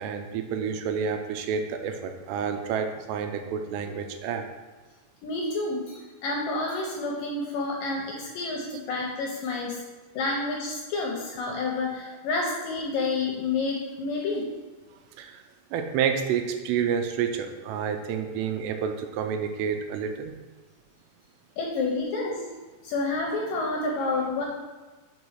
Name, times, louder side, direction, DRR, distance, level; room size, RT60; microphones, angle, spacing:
voice 1, 0.0-4.4 15.2-15.4 15.7-20.3, right 7 dB, 90° right, 6 dB, 2.8 m, -29 dB
voice 2, 5.2-9.8 10.1-14.5 21.6-22.4 22.8-24.4, left 3 dB, 75° left, -1 dB, 2.1 m, -29 dB
6.0 x 4.8 x 5.6 m, 1.3 s
omnidirectional pair, 4.8 m